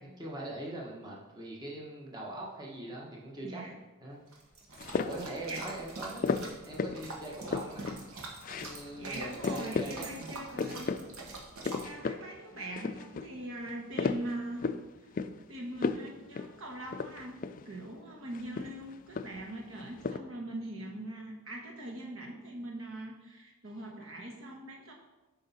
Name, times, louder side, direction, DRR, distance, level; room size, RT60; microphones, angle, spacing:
voice 1, 0.0-3.6 4.0-4.2 5.0-6.2 6.6-8.0 8.5-10.8, right 1 dB, 20° right, -3 dB, 1.2 m, -42 dB
voice 2, 3.4-3.8 5.2-5.7 8.9-11.1 11.8-14.8 15.5-24.9, right 1 dB, 65° right, 1 dB, 1.3 m, -41 dB
sound 1, 4.3-11.9, right 2 dB, 90° right, 1.4 m, -45 dB
sound 2, 4.8-5.3 6.2-7.0 7.3-8.0 8.4-8.8 9.1-9.2 9.4-9.9 10.3-11.0 11.3-12.2 12.6-13.3 13.7-14.8 15.2-15.4 15.8-16.1 16.3-16.5 16.9-17.7 18.3-19.5 19.8-20.2, left 4 dB, 40° left, 0.3 m, -34 dB
8.4 x 5.6 x 4.2 m, 1.1 s
head